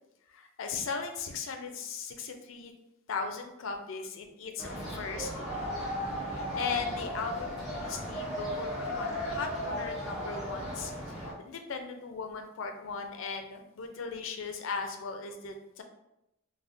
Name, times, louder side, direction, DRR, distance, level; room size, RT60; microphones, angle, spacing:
voice 1, 0.3-2.7 3.1-5.7 6.2-15.8, left 4 dB, 70° left, 5 dB, 0.4 m, -38 dB
sound 1, 4.6-11.3, equal, 5° right, 0.7 m, -35 dB
3.4 x 2.1 x 2.5 m, 0.86 s
head